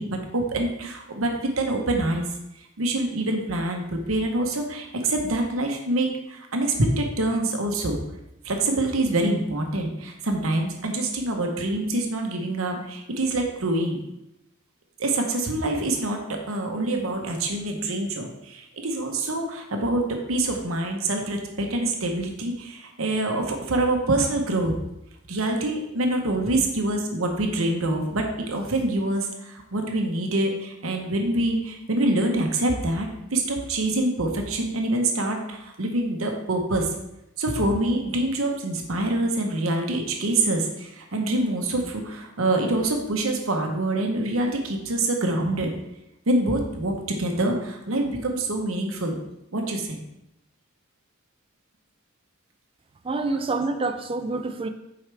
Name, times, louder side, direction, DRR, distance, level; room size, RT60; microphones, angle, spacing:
voice 1, 0.0-2.2 2.6-8.0 8.4-14.0 15.0-24.7 25.3-36.9 37.4-45.7 46.3-49.1 49.5-50.0 53.3-53.4, right 2 dB, 75° right, 1.0 m, -25 dB
voice 2, 53.0-54.7, right 3 dB, 25° right, 0.4 m, -27 dB
7.8 x 4.8 x 3.4 m
head